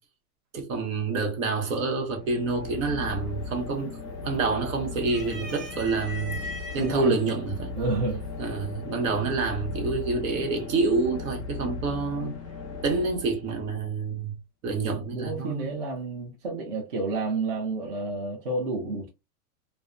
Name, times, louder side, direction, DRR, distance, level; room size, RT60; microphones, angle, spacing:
voice 1, 0.5-4.0 4.2-7.7 8.4-12.4 12.8-14.4 14.6-15.8, right 3 dB, 60° right, 0.9 m, -28 dB
sound 1, 1.9-13.8, left 4 dB, 25° left, 0.5 m, -37 dB
sound 2, 3.1-3.5 3.9-4.6 5.0-6.9 7.8-7.9 9.1-9.6, left 2 dB, ahead, 1.0 m, -40 dB
voice 2, 6.8-7.2 7.7-8.2 15.1-19.1, right 3 dB, 40° right, 0.5 m, -30 dB
2.7 x 2.0 x 2.2 m
supercardioid pair, 175°, 46 cm